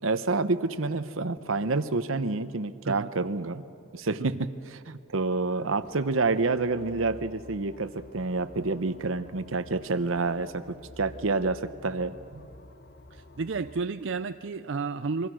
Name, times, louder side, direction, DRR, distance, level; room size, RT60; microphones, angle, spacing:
voice 1, 0.0-3.6 3.9-12.1, right 3 dB, 80° right, 12 dB, 1.0 m, -28 dB
sound 1, 5.8-13.8, left 1 dB, 55° left, 1.1 m, -50 dB
voice 2, 13.1-15.3, right 4 dB, 65° right, 10 dB, 0.5 m, -32 dB
28.0 x 23.5 x 6.3 m, 2.5 s
head